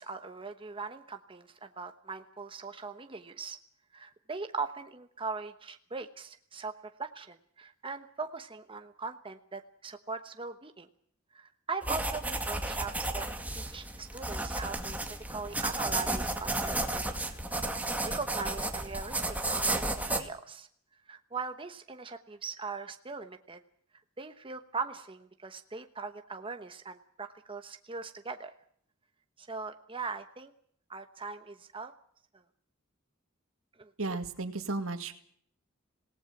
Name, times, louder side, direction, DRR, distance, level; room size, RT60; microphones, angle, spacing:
voice 1, 0.0-3.6 3.9-10.9 11.3-13.2 13.5-17.4 18.0-19.9 20.1-20.7 21.1-23.6 24.2-28.5 29.4-30.5 30.9-31.9 33.8-34.2, right 4 dB, 25° right, 7 dB, 1.1 m, -40 dB
sound 1, 11.8-20.2, right 2 dB, 10° right, 2.1 m, -33 dB
voice 2, 34.0-35.1, right 3 dB, 75° right, 8 dB, 2.2 m, -34 dB
26.5 x 18.5 x 6.0 m, 0.62 s
head